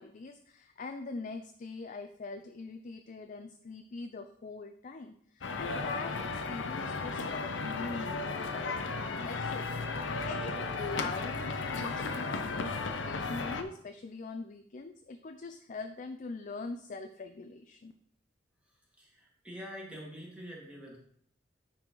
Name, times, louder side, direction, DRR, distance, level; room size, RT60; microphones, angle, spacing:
voice 1, 0.0-17.9, left 3 dB, 45° left, 7 dB, 0.4 m, -42 dB
sound 1, 5.4-13.6, left 4 dB, 80° left, 0.7 m, -35 dB
voice 2, 19.0-21.0, equal, 5° right, -4 dB, 2.1 m, -45 dB
9.5 x 4.2 x 4.7 m, 0.68 s
head